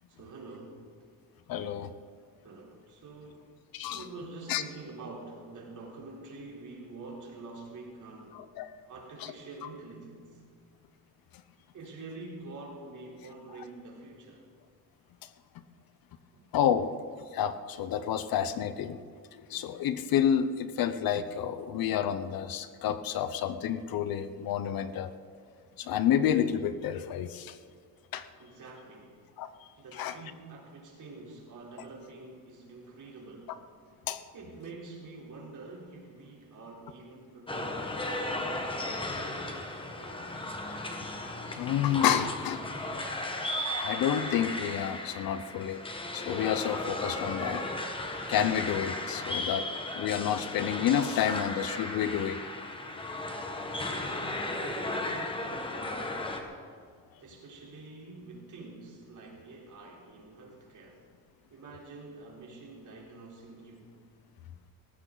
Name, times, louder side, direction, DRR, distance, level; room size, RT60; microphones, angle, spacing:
voice 1, 0.1-0.9 2.4-3.5 3.9-8.4 8.9-10.4 11.7-14.5 16.3-16.5 28.4-29.2 29.8-33.6 34.3-39.2 53.9-56.4 57.2-61.0 61.5-63.9, right 3 dB, 50° right, -2 dB, 3.7 m, -47 dB
voice 2, 1.5-1.9 3.7-4.0 4.5-4.6 8.6-8.7 16.5-16.9 17.3-19.0 19.3-25.1 25.8-27.6 28.1-28.3 29.4-29.5 30.0-30.1 34.1-34.2 41.5-42.6 43.8-45.8 46.1-47.7 48.3-49.6 50.0-52.4, left 9 dB, 65° left, 12 dB, 0.8 m, -29 dB
sound 1, 37.5-56.4, left 2 dB, 15° left, 1.2 m, -35 dB
18.5 x 15.0 x 4.0 m, 2.1 s
cardioid pair, 165°, 38 cm